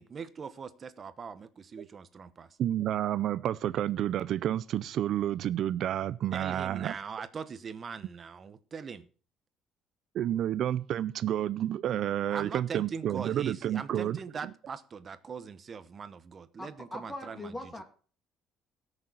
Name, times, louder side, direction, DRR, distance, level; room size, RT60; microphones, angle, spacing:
voice 1, 0.0-2.6 6.3-9.1 12.3-17.6, right 6 dB, 30° right, 0.9 m, -41 dB
voice 2, 2.6-6.9 10.1-14.2, right 11 dB, 55° right, 0.5 m, -30 dB
voice 3, 16.6-17.8, left 1 dB, 15° left, 2.3 m, -41 dB
18.5 x 6.6 x 4.1 m
cardioid pair, 140°, 0 cm